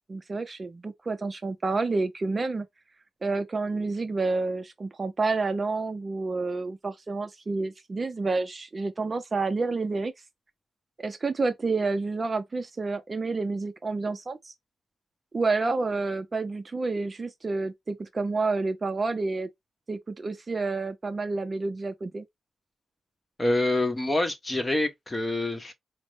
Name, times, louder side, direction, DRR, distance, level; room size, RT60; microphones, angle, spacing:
voice 1, 0.0-2.7 3.2-10.1 11.0-14.5 15.3-19.5 19.9-22.2, right 3 dB, 35° right, 0.5 m, -29 dB
voice 2, 23.4-25.7, left 2 dB, 20° left, 1.0 m, -26 dB
5.2 x 2.0 x 3.2 m
cardioid pair, 95°, 0 cm